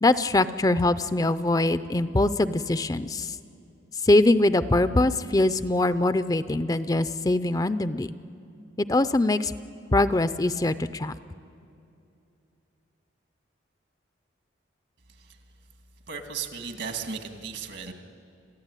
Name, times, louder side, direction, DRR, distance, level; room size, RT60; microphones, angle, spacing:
voice 1, 0.0-3.4 4.0-8.1 8.8-9.5 9.9-11.1, left 2 dB, 20° left, 13 dB, 0.5 m, -23 dB
voice 2, 16.1-17.9, right 6 dB, 70° right, 5 dB, 2.1 m, -35 dB
27.0 x 15.0 x 9.8 m, 2.6 s
head